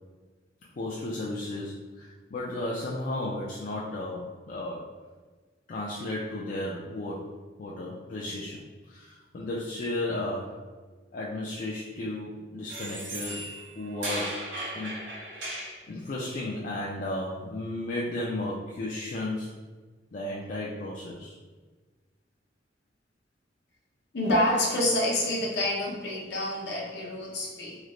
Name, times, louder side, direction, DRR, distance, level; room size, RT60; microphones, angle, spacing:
voice 1, 0.8-4.9 5.7-7.3 7.6-8.6 8.9-10.6 11.1-13.4 13.8-14.4 14.7-15.5 15.9-19.5 20.1-21.4, left 1 dB, 45° left, -4 dB, 0.4 m, -34 dB
sound 1, 12.7-15.8, right 1 dB, 90° right, 1.2 m, -36 dB
voice 2, 24.1-27.8, left 1 dB, 65° left, -4 dB, 0.9 m, -27 dB
3.2 x 2.1 x 3.7 m, 1.4 s
head